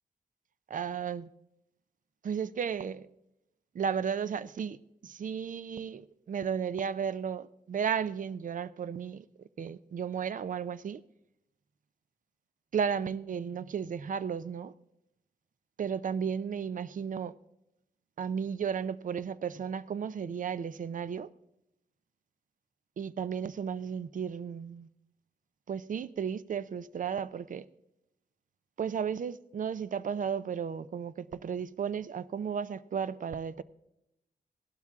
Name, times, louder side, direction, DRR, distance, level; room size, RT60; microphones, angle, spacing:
voice 1, 0.7-1.3 2.2-3.1 3.7-4.8 5.0-9.2 9.6-11.0 12.7-14.7 15.8-17.3 18.2-21.3 23.0-24.9 25.7-27.7 28.8-33.6, right 7 dB, 55° right, 0.5 m, -34 dB
17.5 x 12.0 x 3.6 m
wide cardioid pair, 120°, 16 cm